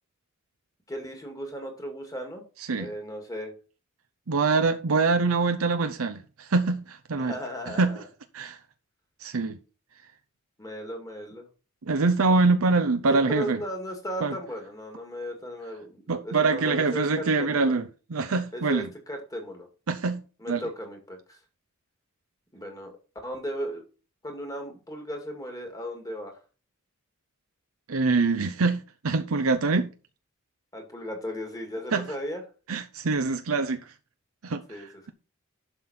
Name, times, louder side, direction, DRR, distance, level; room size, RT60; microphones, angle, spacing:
voice 1, 0.9-2.4 2.8-3.5 7.2-8.1 10.6-11.5 13.1-17.7 18.5-19.7 20.4-21.4 22.5-22.9 23.2-23.8 24.2-26.4 30.7-32.4 34.7-34.9, equal, 15° left, 2.2 m, -36 dB
voice 2, 4.3-7.4 7.7-8.0 8.3-8.6 9.2-9.6 11.8-13.6 14.2-14.3 16.1-17.8 18.1-18.9 19.9-20.6 27.9-29.9 31.9-32.1 32.7-33.8 34.4-35.1, right 3 dB, 90° right, 0.7 m, -24 dB
11.5 x 5.9 x 4.3 m
head